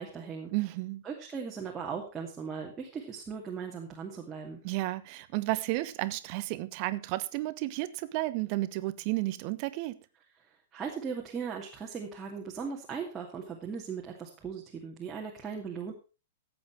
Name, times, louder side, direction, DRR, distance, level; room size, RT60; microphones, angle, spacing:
voice 1, 0.0-0.5 1.0-4.6 10.7-15.9, right 6 dB, 15° right, 2.6 m, -38 dB
voice 2, 0.5-1.0 4.6-10.0, right 18 dB, 40° right, 1.1 m, -32 dB
15.5 x 8.6 x 4.7 m
figure-of-eight pair, 105°, 0 cm